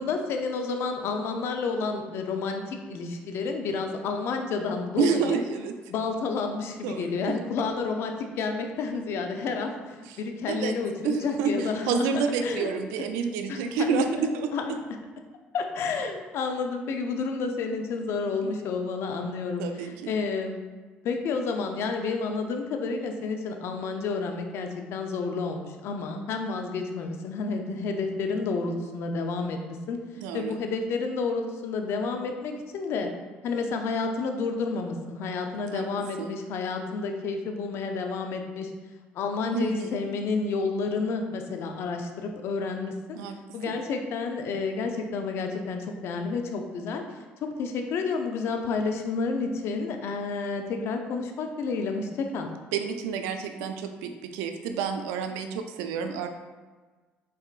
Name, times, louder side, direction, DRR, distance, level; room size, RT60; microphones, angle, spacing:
voice 1, 0.0-5.4 5.9-12.8 13.5-14.0 14.5-14.7 15.5-20.6 21.0-30.0 30.3-33.1 33.4-38.7 39.1-43.2 43.5-52.5, left 4 dB, 65° left, 4 dB, 0.5 m, -30 dB
voice 2, 5.0-5.7 6.8-7.4 10.1-10.2 10.5-10.8 11.0-14.5 19.6-20.1 30.2-30.6 35.7-35.9 36.2-36.4 39.5-40.0 43.1-43.4 43.7-43.8 52.7-56.3, right 5 dB, 90° right, 6 dB, 0.4 m, -29 dB
4.2 x 3.6 x 2.4 m, 1.3 s
supercardioid pair, 80°, 5 cm